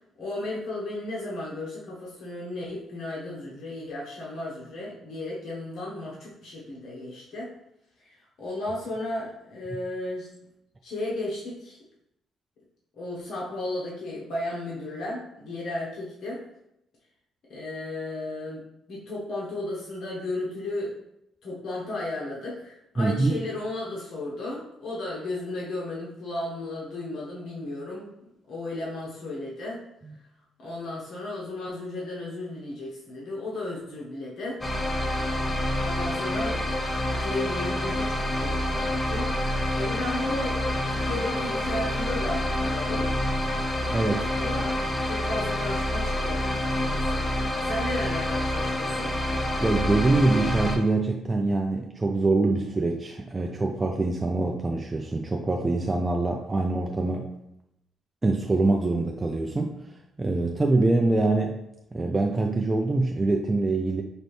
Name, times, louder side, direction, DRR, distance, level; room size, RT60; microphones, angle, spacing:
voice 1, 0.2-7.5 8.0-10.3 10.8-11.8 13.0-16.4 17.5-18.6 18.9-20.9 21.4-28.1 28.5-29.8 30.6-34.6 35.8-36.6 37.1-39.3 39.8-43.1 44.3-47.2 47.6-49.1, left 2 dB, 65° left, -5 dB, 1.0 m, -34 dB
voice 2, 23.0-23.4 43.9-44.3 49.6-57.3 58.2-59.8 60.2-61.6 61.9-64.0, right 2 dB, 20° right, 1 dB, 0.4 m, -24 dB
sound 1, 34.6-50.8, left 1 dB, 20° left, 0.7 m, -27 dB
5.3 x 2.6 x 3.2 m, 0.81 s
cardioid pair, 90°, 0 cm